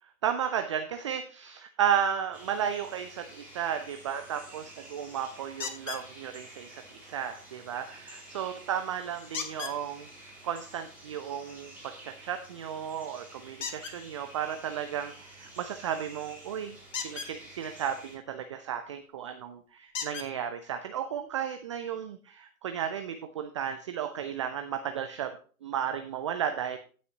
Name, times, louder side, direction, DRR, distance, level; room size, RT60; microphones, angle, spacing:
voice 1, 0.2-25.3 25.6-26.8, right 9 dB, 20° right, 7 dB, 0.4 m, -34 dB
sound 1, 2.3-18.2, right 1 dB, 5° right, 5.0 m, -51 dB
sound 2, 5.6-6.1 9.3-9.8 13.6-13.9 16.9-17.3 19.0-19.1 19.9-20.3 21.3-21.4 21.9-22.0, left 6 dB, 55° left, 1.7 m, -36 dB
16.5 x 6.3 x 2.8 m, 0.40 s
figure-of-eight pair, 110°, 44 cm